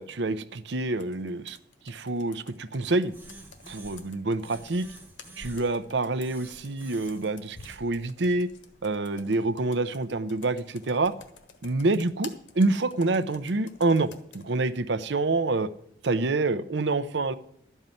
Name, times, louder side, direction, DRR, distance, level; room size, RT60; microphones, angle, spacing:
voice 1, 0.0-1.6 1.8-3.1 3.7-4.9 5.4-8.5 8.8-11.1 11.6-15.7 16.0-17.3, right 2 dB, 75° right, 13 dB, 0.7 m, -27 dB
Computer keyboard, 1.0-14.5, left 5 dB, 85° left, 1.3 m, -52 dB
sound 1, 3.1-4.1 4.4-5.8 6.2-7.8, right 1 dB, 10° right, 1.7 m, -48 dB
12.0 x 5.6 x 9.1 m, 0.69 s
head